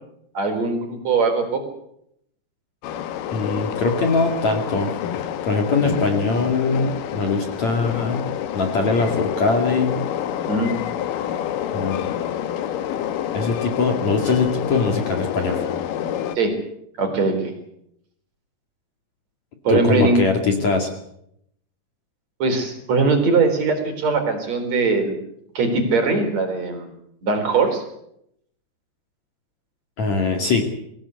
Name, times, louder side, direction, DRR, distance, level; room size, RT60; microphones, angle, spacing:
voice 1, 0.3-1.6 10.5-10.7 16.3-16.5 17.0-17.5 19.6-20.2 22.4-25.1 25.5-26.9 27.2-27.8, right 3 dB, 40° right, 6 dB, 5.1 m, -20 dB
Train, 2.8-16.4, left 10 dB, 65° left, 2.3 m, -28 dB
voice 2, 3.3-4.9 5.5-8.2 8.5-9.9 11.7-12.2 13.3-15.6 19.7-20.9 30.0-30.7, left 4 dB, 45° left, 3 dB, 3.1 m, -21 dB
25.0 x 18.0 x 8.3 m, 0.76 s
omnidirectional pair, 5.3 m